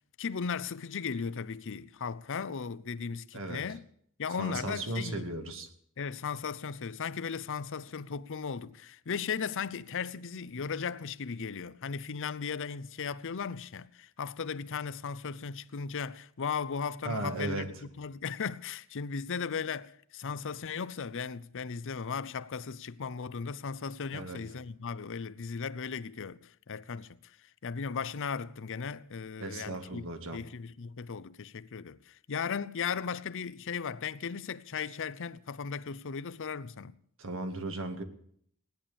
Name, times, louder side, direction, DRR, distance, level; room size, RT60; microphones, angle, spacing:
voice 1, 0.2-3.8 4.2-5.3 6.0-27.3 27.6-30.1 30.3-37.0, left 6 dB, 60° left, 0.6 m, -37 dB
voice 2, 4.4-5.7 17.0-17.7 24.1-24.4 29.4-30.4 37.2-38.0, right 2 dB, 65° right, 1.9 m, -36 dB
17.5 x 10.5 x 7.0 m
head